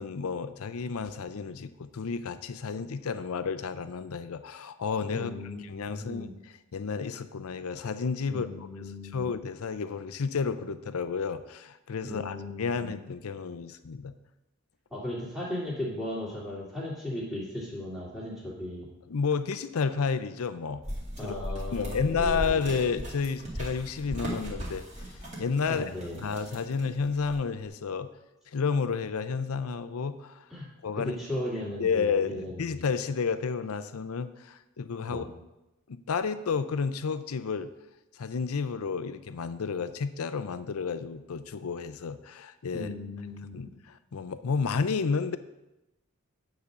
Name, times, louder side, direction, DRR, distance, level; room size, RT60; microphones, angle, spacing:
voice 1, 0.0-5.4 5.6-6.3 6.7-14.1 19.1-20.8 21.2-21.3 21.7-25.0 25.4-25.9 26.1-28.1 28.5-30.4 30.8-31.2 31.8-35.4 35.9-37.7 38.2-42.9 43.5-45.4, left 5 dB, 80° left, 12 dB, 0.5 m, -31 dB
voice 2, 5.1-5.6 5.9-6.3 8.3-9.3 12.0-12.9 14.9-18.9 21.2-22.6 25.7-26.2 30.5-30.6 31.0-32.8 35.1-35.3 42.7-43.5, left 1 dB, ahead, -7 dB, 2.3 m, -36 dB
sound 1, 20.8-27.6, equal, 30° right, 2.2 m, -38 dB
9.8 x 3.9 x 6.7 m, 0.96 s
head